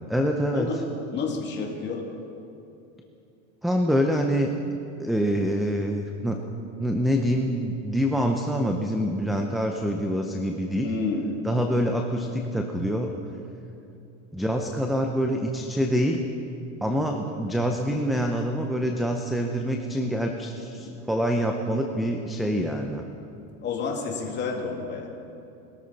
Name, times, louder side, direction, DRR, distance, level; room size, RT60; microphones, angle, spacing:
voice 1, 0.1-0.7 3.6-4.5 5.0-6.4 6.8-10.9 11.4-13.1 14.3-16.2 16.8-23.0, equal, ahead, 3 dB, 0.5 m, -25 dB
voice 2, 1.1-2.1 10.8-11.3 23.6-25.1, left 4 dB, 30° left, 0 dB, 2.4 m, -30 dB
21.5 x 13.0 x 4.1 m, 2.7 s
supercardioid pair, 140°, 37 cm